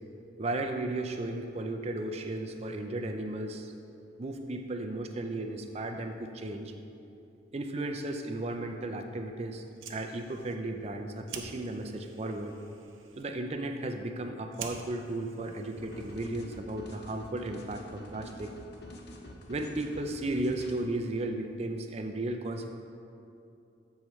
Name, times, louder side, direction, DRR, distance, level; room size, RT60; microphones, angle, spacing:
voice 1, 0.4-3.7 4.2-6.7 7.5-9.6 9.9-12.5 13.2-18.5 19.5-22.7, right 2 dB, 30° right, 5 dB, 0.4 m, -35 dB
Fire, 9.7-16.5, right 6 dB, 80° right, 0.6 m, -49 dB
sound 1, 15.8-20.9, left 1 dB, 55° left, 0.7 m, -47 dB
13.0 x 4.7 x 3.1 m, 2.7 s
head